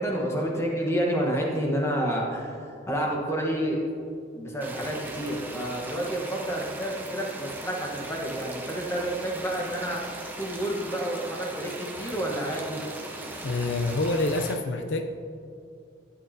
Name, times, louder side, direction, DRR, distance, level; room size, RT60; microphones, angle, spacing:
voice 1, 0.0-3.8 4.3-10.0 10.4-12.8, right 1 dB, 15° left, -1 dB, 1.1 m, -29 dB
sound 1, 4.6-14.5, right 2 dB, 10° right, 0.6 m, -39 dB
voice 2, 13.4-15.1, left 2 dB, 70° left, 6 dB, 0.5 m, -27 dB
11.5 x 8.6 x 2.7 m, 2.3 s
head